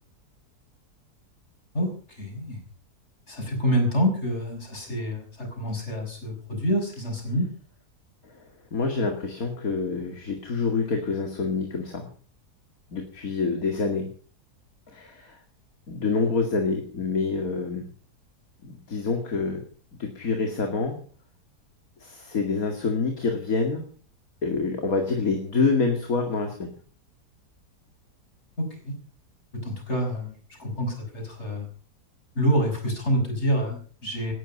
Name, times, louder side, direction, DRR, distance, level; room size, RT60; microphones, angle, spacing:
voice 1, 1.7-2.6 3.3-7.5 28.6-29.0 29.5-31.7 32.3-34.3, equal, 40° left, 4 dB, 6.4 m, -27 dB
voice 2, 8.7-12.1 12.9-14.1 14.9-15.4 15.9-17.8 18.6-19.6 20.0-21.0 22.0-23.9 24.4-26.7, left 4 dB, 60° left, 4 dB, 2.7 m, -27 dB
18.5 x 13.0 x 5.5 m, 0.40 s
omnidirectional pair, 1.7 m